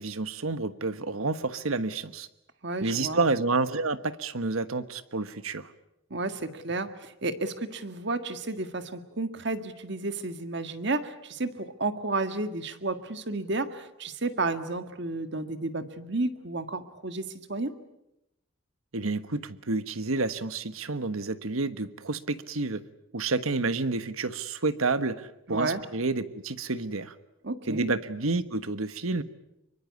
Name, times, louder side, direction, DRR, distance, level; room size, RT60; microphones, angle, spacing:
voice 1, 0.0-2.3 2.8-5.7 18.9-22.8 23.1-27.1 27.7-29.2, right 3 dB, 90° right, 12 dB, 1.4 m, -29 dB
voice 2, 2.6-3.2 6.1-17.7 25.5-25.8 27.4-27.9, right 2 dB, 55° right, 9 dB, 1.8 m, -32 dB
25.5 x 23.5 x 8.5 m, 0.87 s
head